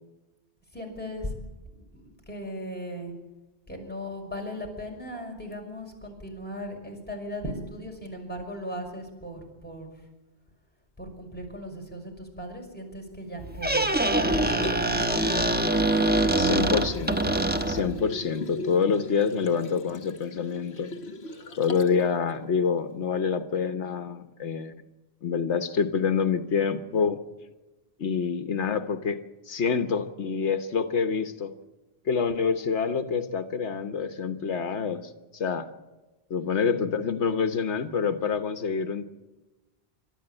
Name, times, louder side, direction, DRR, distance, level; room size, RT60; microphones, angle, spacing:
voice 1, 0.7-1.3 1.7-3.1 3.7-9.9 11.0-15.4 16.3-16.8 36.4-36.8, equal, 10° left, 0 dB, 5.7 m, -37 dB
Squeak, 13.4-18.0, right 1 dB, 10° right, 1.0 m, -24 dB
Liquid, 14.3-22.0 22.4-22.5, left 2 dB, 70° left, 1.6 m, -39 dB
voice 2, 16.4-17.4 17.7-20.9 21.6-24.7 25.2-27.2 28.0-29.2 29.5-31.5 32.1-35.7 36.3-39.0, left 6 dB, 85° left, 9 dB, 1.4 m, -27 dB
28.5 x 13.0 x 8.9 m, 1.1 s
omnidirectional pair, 1.1 m